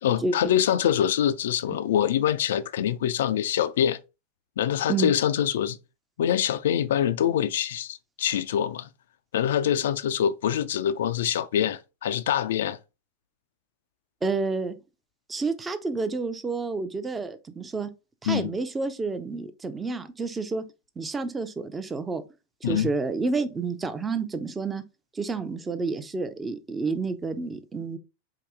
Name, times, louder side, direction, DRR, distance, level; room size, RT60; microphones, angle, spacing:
voice 1, 0.0-4.0 4.6-5.8 6.2-8.9 9.3-12.8 18.3-18.5 22.6-22.9, left 10 dB, 60° left, 0.3 m, -25 dB
voice 2, 14.2-14.7 15.3-17.9 18.2-20.7 21.0-22.2 22.6-24.8 25.1-28.0, right 4 dB, 15° right, 0.5 m, -29 dB
4.7 x 2.7 x 3.5 m
figure-of-eight pair, 90°, 0 cm